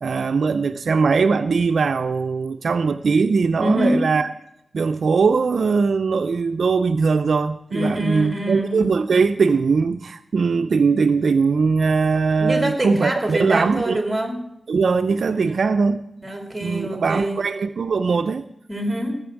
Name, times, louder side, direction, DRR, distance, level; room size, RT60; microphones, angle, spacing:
voice 1, 0.0-4.3 4.7-14.0 14.7-16.0 16.6-18.5, right 4 dB, 80° right, 0.5 m, -20 dB
voice 2, 3.6-4.1 7.7-8.9 12.4-14.4 16.2-17.4 18.7-19.2, right 1 dB, 15° right, 2.8 m, -25 dB
17.5 x 7.1 x 7.1 m
wide cardioid pair, 70°, 0 cm